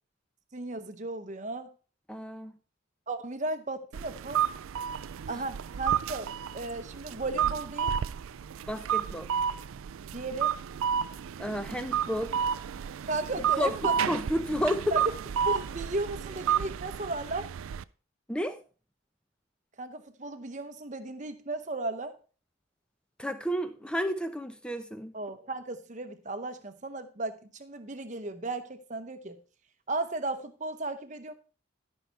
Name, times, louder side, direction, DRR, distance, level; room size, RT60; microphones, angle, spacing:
voice 1, 0.5-1.7 3.1-4.4 5.3-7.9 10.1-10.5 13.1-13.9 14.9-15.1 15.5-17.5 19.8-22.1 25.1-29.4 29.9-31.3, right 2 dB, 35° right, 9 dB, 0.9 m, -35 dB
voice 2, 2.1-2.5 5.3-5.4 8.7-9.3 11.4-12.4 13.6-15.0 18.3-18.6 23.2-25.1, equal, 5° left, 10 dB, 0.7 m, -31 dB
sound 1, 3.9-17.8, right 8 dB, 80° right, 0.4 m, -31 dB
13.0 x 5.6 x 4.6 m, 0.37 s
head